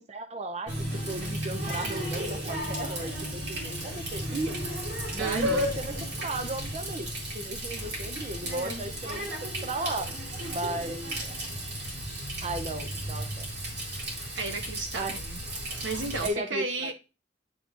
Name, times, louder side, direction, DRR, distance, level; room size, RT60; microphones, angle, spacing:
voice 1, 0.0-4.6 5.1-5.9 6.2-9.4 9.6-10.2 10.5-11.2 12.4-13.5 14.9-15.2 15.5-15.6 16.2-16.9, right 2 dB, 35° right, 0.6 m, -35 dB
Water tap faucet, 0.7-16.3, equal, 60° right, 2.4 m, -34 dB
voice 2, 5.2-5.7 8.4-8.8 14.3-15.4 15.8-16.9, right 3 dB, 85° right, 1.1 m, -33 dB
9.8 x 5.2 x 2.5 m
head